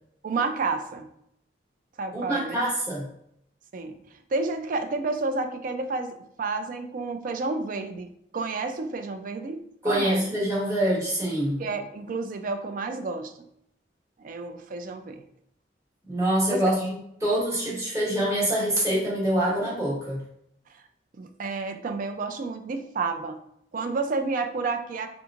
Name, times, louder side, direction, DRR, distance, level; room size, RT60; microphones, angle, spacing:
voice 1, 0.2-1.1 2.0-2.6 3.7-3.9 4.3-10.2 11.6-13.5 14.2-15.2 16.5-16.7 21.2-23.4 23.7-25.1, right 3 dB, 50° right, 7 dB, 0.4 m, -30 dB
voice 2, 2.1-3.1 9.8-11.6 16.1-20.2, right 1 dB, 20° right, -7 dB, 1.4 m, -25 dB
3.4 x 3.0 x 2.4 m, 0.72 s
head